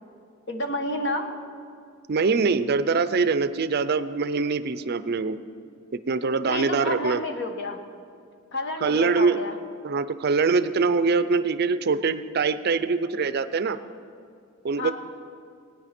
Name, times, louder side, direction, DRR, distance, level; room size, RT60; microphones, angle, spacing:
voice 1, 0.5-1.3 6.5-7.8 8.5-9.6 14.8-14.9, left 2 dB, 60° left, 5 dB, 1.3 m, -30 dB
voice 2, 2.1-5.4 6.1-7.2 8.8-9.4 9.8-13.8 14.6-14.9, right 4 dB, 50° right, 13 dB, 0.5 m, -23 dB
18.5 x 9.5 x 5.9 m, 2.3 s
head